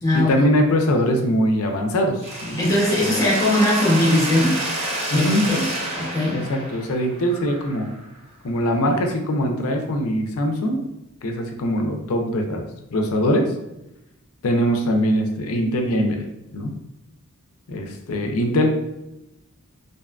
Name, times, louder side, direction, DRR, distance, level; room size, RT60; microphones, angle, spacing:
voice 1, 0.1-2.6 3.0-3.1 5.1-5.4 6.3-7.9 8.4-10.8 11.2-13.4 14.4-16.3 16.5-16.7 17.7-18.7, equal, 75° left, 4 dB, 0.4 m, -22 dB
Mechanisms, 2.2-8.1, right 1 dB, 30° right, 0.5 m, -29 dB
voice 2, 2.6-4.6 5.1-5.7 5.9-6.4, left 1 dB, 15° left, -5 dB, 0.7 m, -20 dB
2.6 x 2.4 x 2.2 m, 0.89 s
head